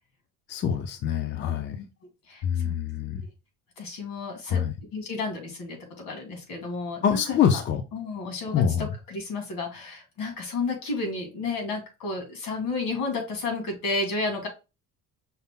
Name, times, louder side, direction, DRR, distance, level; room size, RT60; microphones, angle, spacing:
voice 1, 0.5-1.8 2.4-3.3 4.5-4.7 7.0-7.8 8.5-8.9, left 8 dB, 35° left, 0.4 m, -25 dB
voice 2, 2.3-2.8 3.8-4.6 4.9-7.6 7.9-14.5, left 3 dB, 75° left, 1.9 m, -32 dB
5.5 x 2.0 x 3.6 m
cardioid pair, 145°, 33 cm